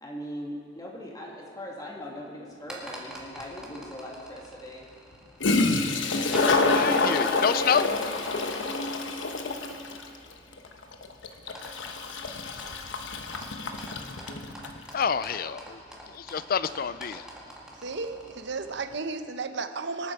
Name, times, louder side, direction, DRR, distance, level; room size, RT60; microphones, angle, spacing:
voice 1, 0.0-4.8, equal, 20° left, -3 dB, 2.5 m, -40 dB
sound 1, 2.5-19.0, right 1 dB, 5° right, 1.9 m, -47 dB
Toilet flush, 3.4-3.5 5.1-5.2 5.4-14.8, left 3 dB, 85° left, 1.0 m, -27 dB
voice 2, 6.7-7.9 14.9-15.8 16.1-17.2, left 7 dB, 50° left, 15 dB, 0.4 m, -27 dB
voice 3, 17.7-20.1, right 4 dB, 70° right, 9 dB, 0.8 m, -34 dB
25.5 x 8.8 x 4.8 m, 2.3 s
head